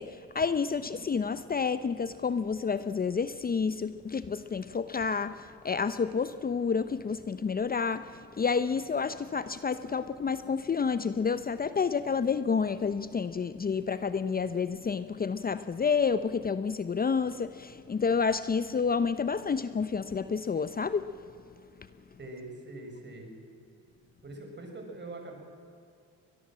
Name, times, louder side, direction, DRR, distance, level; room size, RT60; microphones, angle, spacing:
voice 1, 0.0-8.1 8.4-21.0, left 5 dB, 30° left, 13 dB, 0.8 m, -29 dB
voice 2, 22.2-23.3 24.2-25.4, right 2 dB, 35° right, 2 dB, 6.3 m, -43 dB
23.0 x 18.5 x 7.6 m, 2.6 s
cardioid pair, 90°, 30 cm